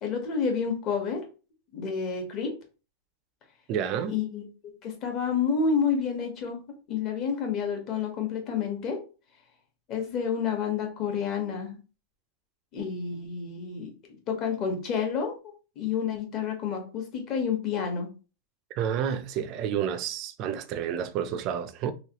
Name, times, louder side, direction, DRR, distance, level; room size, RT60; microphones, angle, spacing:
voice 1, 0.0-1.2 1.7-2.5 4.1-6.6 6.9-9.0 9.9-11.8 12.7-13.9 14.3-15.3 15.8-18.1, left 6 dB, 35° left, 1.1 m, -29 dB
voice 2, 3.7-4.2 18.7-21.9, right 8 dB, 35° right, 0.4 m, -30 dB
3.1 x 3.0 x 2.9 m
supercardioid pair, 155°, 0 cm